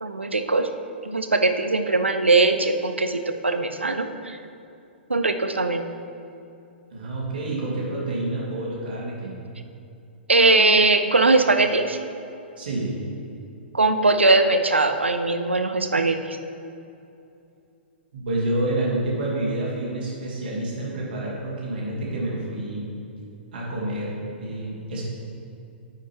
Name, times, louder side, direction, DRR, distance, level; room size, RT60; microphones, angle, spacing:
voice 1, 0.0-0.7 1.0-4.4 5.1-5.8 10.3-12.0 13.7-16.4, right 3 dB, 80° right, 8 dB, 0.6 m, -20 dB
voice 2, 6.9-9.3 12.6-12.9 18.1-22.8 23.5-25.0, right 1 dB, 55° right, -4 dB, 2.1 m, -28 dB
9.7 x 8.6 x 3.0 m, 2.7 s
figure-of-eight pair, 115°, 6 cm